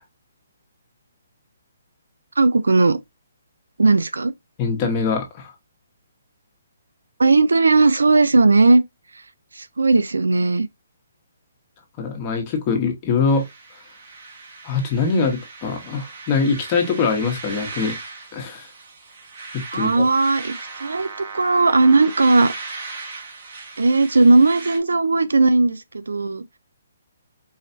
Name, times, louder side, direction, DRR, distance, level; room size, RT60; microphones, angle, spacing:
voice 1, 2.4-3.0 3.8-4.3 7.2-8.8 9.5-10.7 19.7-22.5 23.8-26.4, right 3 dB, 90° right, 0.5 m, -17 dB
voice 2, 4.6-5.5 12.0-13.4 14.6-18.0 18.3-18.7 19.8-20.1, left 4 dB, 30° left, 1.6 m, -23 dB
sound 1, 13.3-24.8, right 4 dB, 50° right, 1.8 m, -37 dB
4.8 x 3.2 x 2.8 m
hypercardioid pair, 150°, 0 cm